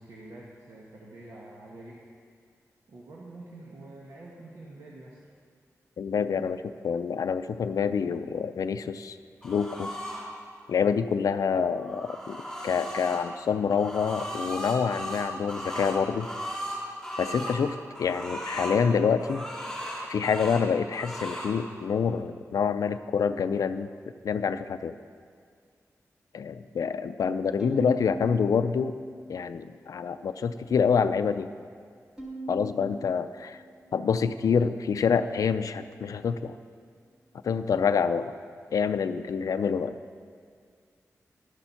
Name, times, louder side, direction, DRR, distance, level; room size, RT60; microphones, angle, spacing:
voice 1, 0.0-2.0 2.9-5.2, right 2 dB, 75° right, -4 dB, 1.3 m, -46 dB
voice 2, 6.0-9.2 9.4-9.9 10.7-12.4 12.6-16.3 17.2-19.5 20.1-23.9 24.2-24.9 26.3-28.9 29.3-31.5 32.5-33.6 33.9-36.6 37.4-38.3 38.7-39.9, left 6 dB, 85° left, 11 dB, 0.4 m, -27 dB
sound 1, 9.4-10.2 11.6-13.2 13.7-17.6 17.9-18.8 19.2-20.6 20.9-21.5, equal, 5° left, 2.9 m, -36 dB
Bowed string instrument, 27.6-30.0 30.4-31.2 32.2-34.7, right 2 dB, 15° right, 1.6 m, -42 dB
12.0 x 6.9 x 5.8 m, 2.1 s
wide cardioid pair, 170°, 6 cm